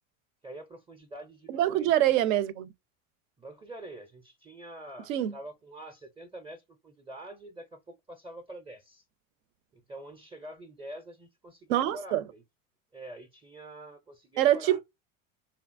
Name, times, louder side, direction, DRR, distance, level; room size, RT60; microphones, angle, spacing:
voice 1, 0.4-1.9 3.4-9.0 9.7-12.4 12.9-14.8, right 1 dB, 15° right, 0.5 m, -46 dB
voice 2, 1.5-2.7 5.1-5.3 11.7-12.2 14.4-14.8, right 12 dB, 75° right, 0.5 m, -25 dB
2.7 x 2.5 x 2.4 m
hypercardioid pair, 90°, 40 cm